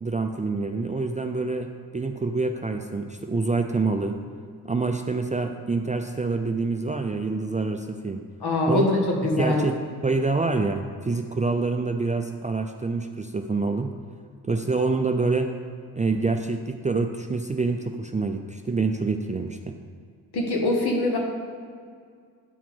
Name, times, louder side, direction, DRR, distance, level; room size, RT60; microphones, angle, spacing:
voice 1, 0.0-4.2 4.6-8.2 8.7-8.9 9.4-9.7 10.0-13.9 14.4-15.5 15.9-19.8, right 3 dB, 20° right, 5 dB, 0.4 m, -26 dB
voice 2, 8.4-9.6 20.3-21.2, left 2 dB, 60° left, 0 dB, 1.6 m, -23 dB
9.0 x 4.7 x 3.6 m, 2.1 s
supercardioid pair, 45°, 43 cm